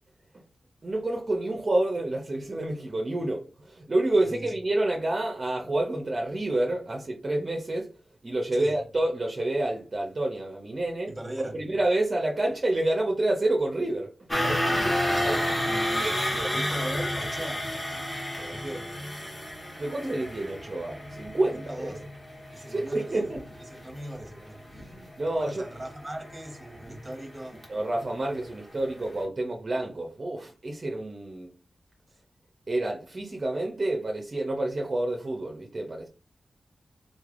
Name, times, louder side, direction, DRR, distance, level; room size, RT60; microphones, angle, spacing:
voice 1, 0.8-7.9 8.2-11.1 11.5-15.0 15.2-15.4 16.0-16.5 19.8-22.0 22.7-23.4 24.9-25.6 27.5-31.5 32.7-36.1, right 2 dB, 35° right, 0.5 m, -29 dB
voice 2, 4.2-4.5 8.5-8.8 11.1-11.6 15.1-17.7 18.4-18.9 21.5-22.0 22.5-23.3 23.6-24.9 25.4-27.6, right 1 dB, 10° right, 0.9 m, -39 dB
sound 1, 14.3-28.3 28.7-28.9 29.2-29.3, left 1 dB, 20° left, 1.0 m, -31 dB
3.9 x 3.2 x 2.4 m
wide cardioid pair, 160°, 0 cm